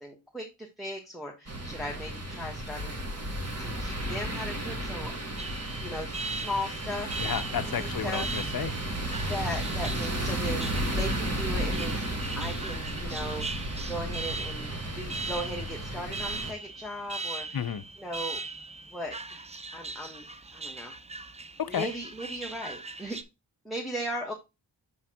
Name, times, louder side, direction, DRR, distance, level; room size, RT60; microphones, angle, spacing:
voice 1, 0.0-2.9 3.6-5.1 5.8-7.2 7.6-8.3 9.3-12.0 12.3-13.6 13.9-17.5 18.0-18.4 18.9-20.3 20.5-21.0 21.7-23.2 23.6-24.3, equal, ahead, 1.1 m, -37 dB
sound 1, 1.5-16.5, right 1 dB, 35° right, 1.4 m, -33 dB
Alarm, 5.4-23.2, right 3 dB, 15° right, 0.4 m, -40 dB
voice 2, 7.2-8.7 17.5-17.8 21.6-21.9, left 8 dB, 50° left, 0.6 m, -32 dB
6.3 x 5.7 x 2.8 m
wide cardioid pair, 75°, 46 cm